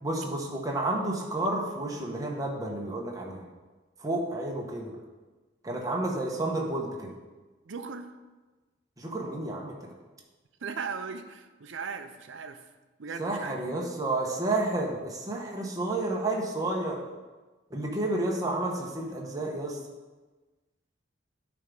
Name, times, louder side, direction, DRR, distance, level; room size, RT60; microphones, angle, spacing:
voice 1, 0.0-3.5 4.0-4.9 5.6-7.1 9.0-9.7 13.2-17.0 17.7-19.8, right 2 dB, 20° right, -2 dB, 1.0 m, -31 dB
voice 2, 7.7-8.1 10.6-12.6 13.0-13.6, right 5 dB, 80° right, 9 dB, 0.6 m, -37 dB
9.4 x 3.5 x 5.3 m, 1.2 s
head